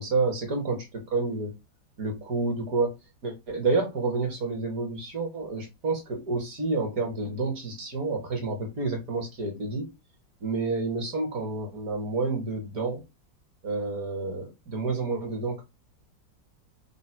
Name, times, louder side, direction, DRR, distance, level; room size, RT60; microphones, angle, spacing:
voice 1, 0.0-1.5 2.0-3.0 3.2-9.9 10.4-13.0 13.6-15.6, right 3 dB, 55° right, 1.4 m, -29 dB
3.7 x 2.2 x 4.3 m
omnidirectional pair, 2.0 m